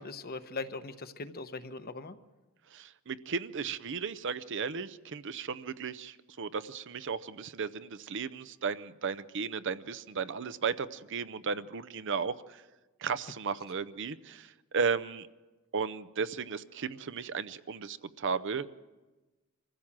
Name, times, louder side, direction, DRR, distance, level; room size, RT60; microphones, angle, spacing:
voice 1, 0.0-2.2, left 3 dB, 45° left, 10 dB, 1.0 m, -40 dB
voice 2, 2.7-12.6 13.0-15.3 15.7-18.7, right 5 dB, 60° right, 15 dB, 0.6 m, -35 dB
24.5 x 15.5 x 7.4 m, 1.2 s
head